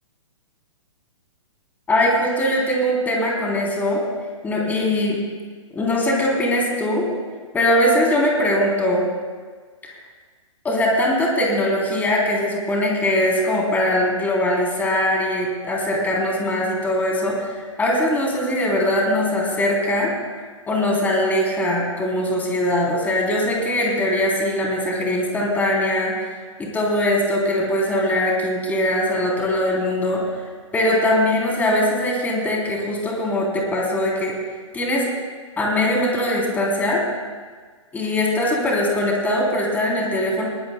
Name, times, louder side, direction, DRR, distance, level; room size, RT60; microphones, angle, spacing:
voice 1, 1.9-4.0 4.4-5.2 5.7-7.1 7.5-9.1 10.6-20.1 20.7-26.3 26.6-30.4 30.7-34.3 34.7-35.1 35.6-37.0 37.9-40.4, left 1 dB, 10° left, -2 dB, 3.3 m, -21 dB
21.5 x 19.0 x 2.2 m, 1.5 s
figure-of-eight pair, 125°, 17 cm